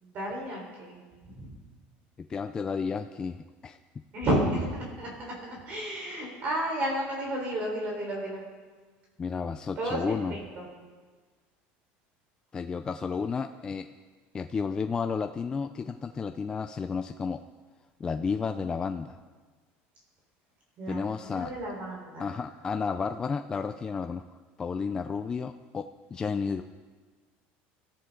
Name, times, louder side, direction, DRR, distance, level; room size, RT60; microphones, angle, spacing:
voice 1, 0.0-1.0 1.4-1.5 4.1-5.3 5.7-8.4 9.8-10.7 20.8-22.3, right 1 dB, 35° right, -2 dB, 4.2 m, -32 dB
voice 2, 2.2-3.8 9.2-10.4 12.5-13.9 14.3-17.4 18.0-19.2 20.9-21.5 22.2-24.2 24.6-26.6, left 5 dB, 15° left, 7 dB, 0.4 m, -32 dB
25.0 x 14.0 x 3.8 m, 1.4 s
cardioid pair, 170°, 5 cm